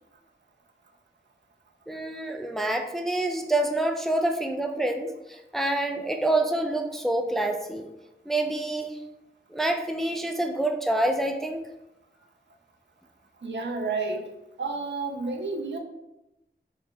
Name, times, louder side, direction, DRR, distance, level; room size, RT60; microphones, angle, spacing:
voice 1, 1.9-7.9 8.3-9.0 9.5-11.6, right 1 dB, ahead, 5 dB, 0.3 m, -27 dB
voice 2, 13.4-14.2 14.6-15.8, right 3 dB, 85° right, 2 dB, 0.5 m, -30 dB
4.6 x 2.1 x 3.4 m, 0.94 s
wide cardioid pair, 80°, 18 cm